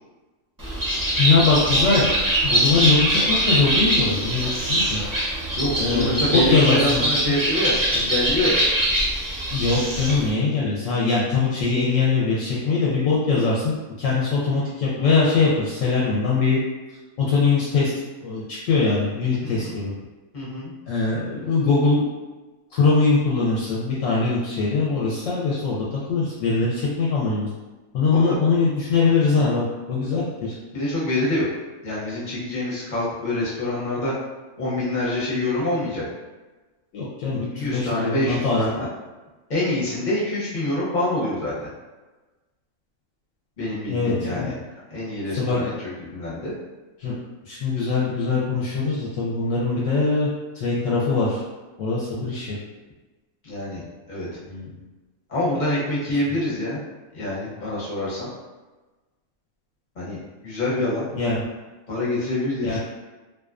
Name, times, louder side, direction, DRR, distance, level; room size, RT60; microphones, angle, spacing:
Bird, 0.6-10.3, right 1 dB, 30° right, 0.3 m, -23 dB
voice 1, 1.2-2.0 2.4-5.0 5.8-7.0 9.5-16.6 17.2-17.9 18.2-19.9 20.9-22.0 22.7-25.8 26.1-27.5 27.9-30.5 36.9-38.8 43.9-44.5 45.4-45.6 47.0-47.1 47.5-50.3 50.5-51.4 51.8-52.5 54.5-54.7 61.1-61.4 62.6-62.8, left 4 dB, 70° left, -6 dB, 0.9 m, -22 dB
voice 2, 5.2-8.6 19.4-19.8 20.3-20.7 28.1-28.4 29.3-29.6 30.7-31.5 31.8-34.1 34.6-36.1 37.5-38.9 39.5-41.7 43.6-44.6 44.9-46.5 53.4-53.8 54.1-54.3 55.3-56.8 57.1-58.3 60.0-60.2 60.4-61.1 61.9-62.8, left 1 dB, 40° left, -7 dB, 0.8 m, -26 dB
2.4 x 2.3 x 2.3 m, 1.2 s
omnidirectional pair, 1.5 m